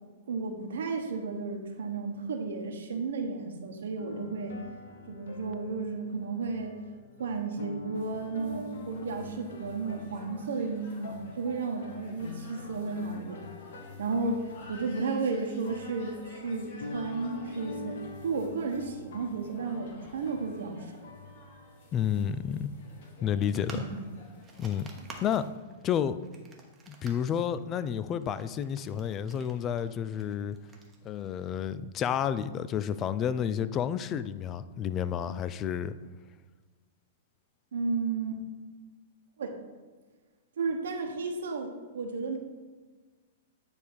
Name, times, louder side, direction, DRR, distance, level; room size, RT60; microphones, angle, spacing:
voice 1, 0.3-4.6 5.1-6.8 7.2-13.4 14.0-20.9 23.7-23.9 37.7-38.4 39.4-39.5 40.6-42.4, right 4 dB, 80° right, 4 dB, 1.1 m, -33 dB
sound 1, 4.0-22.5, left 2 dB, 80° left, 0.9 m, -46 dB
sound 2, 7.9-25.5, left 1 dB, 60° left, 1.9 m, -51 dB
voice 2, 21.9-22.7 23.2-23.9 24.6-24.9 25.2-25.4 25.8-26.2 26.9-30.6 31.0-35.9, left 9 dB, 25° left, 14 dB, 0.3 m, -30 dB
sound 3, 23.4-31.7, right 3 dB, 15° right, 1.0 m, -52 dB
9.4 x 3.5 x 4.7 m, 1.3 s
hypercardioid pair, 140°, 0 cm